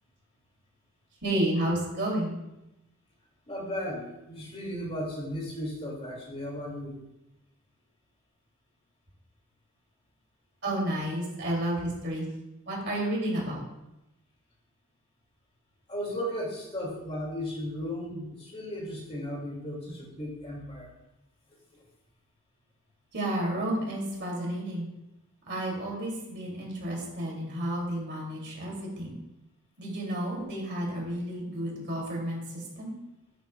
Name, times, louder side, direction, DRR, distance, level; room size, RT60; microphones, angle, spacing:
voice 1, 1.2-2.4 10.6-12.2 12.7-13.6 19.9-20.0 23.1-24.9 25.5-29.2 29.8-32.9, right 1 dB, 50° right, -2 dB, 2.6 m, -31 dB
voice 2, 3.5-6.9 15.9-20.9, equal, 30° left, -2 dB, 2.2 m, -35 dB
11.0 x 8.3 x 2.3 m, 0.92 s
head